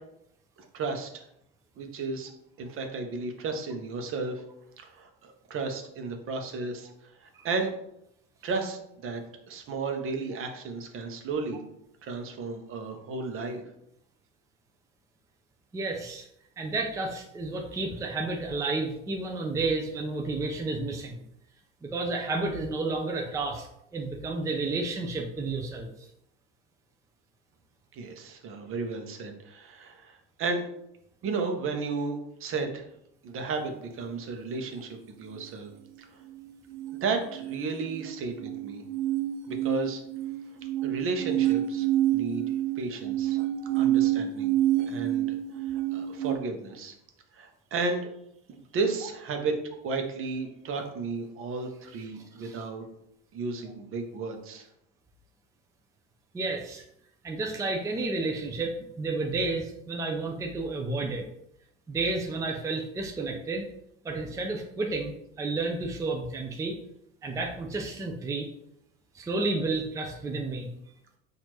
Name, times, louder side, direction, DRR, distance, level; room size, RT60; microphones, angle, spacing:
voice 1, 0.6-1.2 1.8-2.3 2.6-4.4 4.8-6.9 7.2-7.7 8.4-11.6 12.0-13.6 27.9-30.7 31.2-32.9 33.2-35.7 37.0-38.8 39.5-40.0 40.8-41.9 42.1-43.4 43.8-44.6 44.9-45.3 45.7-46.9 47.3-48.1 48.5-49.6 49.8-52.8 53.3-54.7, right 4 dB, 45° right, 5 dB, 0.8 m, -33 dB
voice 2, 15.7-16.3 16.6-21.1 21.8-25.9 52.2-52.6 56.3-56.9 57.2-61.3 61.9-63.7 64.0-66.8 67.2-68.5 69.1-70.7, right 3 dB, 10° right, 1 dB, 0.4 m, -31 dB
sound 1, 36.7-46.4, right 13 dB, 75° right, 0.5 m, -28 dB
4.3 x 2.6 x 3.0 m, 0.78 s
supercardioid pair, 90°, 29 cm